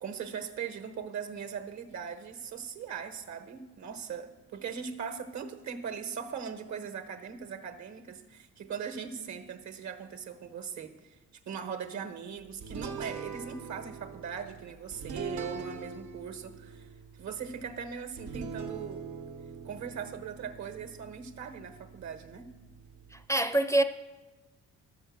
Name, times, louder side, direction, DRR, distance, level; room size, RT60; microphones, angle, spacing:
voice 1, 0.0-11.1 11.4-16.9 17.1-19.1 19.6-22.5, right 7 dB, 65° right, 1.2 m, -40 dB
sound 1, 12.6-23.2, right 5 dB, 85° right, 1.1 m, -43 dB
voice 2, 23.1-23.8, right 1 dB, 10° left, 0.4 m, -25 dB
11.0 x 6.8 x 7.3 m
cardioid pair, 90°, 30 cm